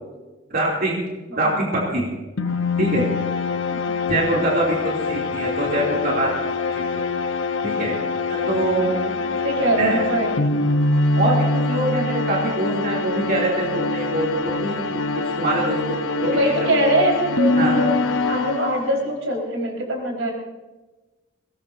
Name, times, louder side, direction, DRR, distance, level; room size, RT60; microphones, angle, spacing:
voice 1, 0.5-1.0 1.4-2.1 2.8-3.1 4.1-6.3 6.9-7.0 7.6-8.0 8.3-8.9 9.8-10.0 11.2-14.8 15.2-16.8 17.6-17.8, right 1 dB, 50° right, -4 dB, 3.1 m, -24 dB
voice 2, 1.3-2.0 3.7-4.2 8.7-10.5 16.2-17.9 18.3-20.3, right 1 dB, 85° right, -1 dB, 4.9 m, -24 dB
sound 1, 2.4-19.1, left 3 dB, 80° left, 1.0 m, -24 dB
22.0 x 19.0 x 2.8 m, 1.2 s
head